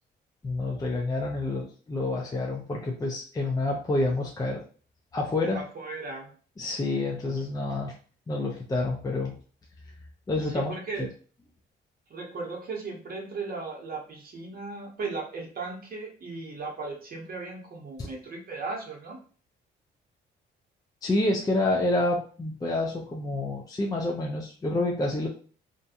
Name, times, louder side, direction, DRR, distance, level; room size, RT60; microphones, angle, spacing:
voice 1, 0.4-4.6 5.1-5.6 6.6-7.9 8.3-9.3 10.3-11.1 18.0-18.1 21.0-25.3, left 2 dB, 20° left, -1 dB, 0.5 m, -28 dB
voice 2, 5.5-6.3 10.4-11.1 12.1-19.2, right 3 dB, 50° right, 0 dB, 0.8 m, -36 dB
2.5 x 2.2 x 2.7 m, 0.41 s
cardioid pair, 90°, 20 cm